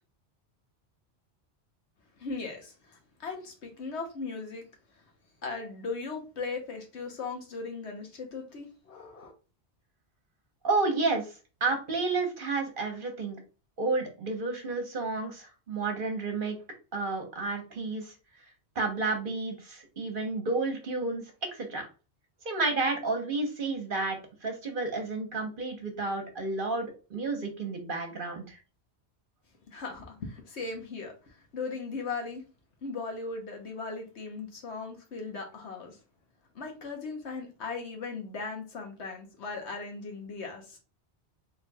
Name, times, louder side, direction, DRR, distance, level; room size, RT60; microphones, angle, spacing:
voice 1, 2.2-4.6 5.4-9.3 29.7-31.1 31.5-32.4 32.8-36.0 36.5-40.8, left 4 dB, 80° left, 1.4 m, -38 dB
voice 2, 10.6-11.3 11.6-13.4 13.8-16.6 16.9-18.1 18.7-21.2 21.5-21.9 22.4-28.6, right 3 dB, 50° right, 1.2 m, -31 dB
4.3 x 3.7 x 2.3 m
omnidirectional pair, 1.1 m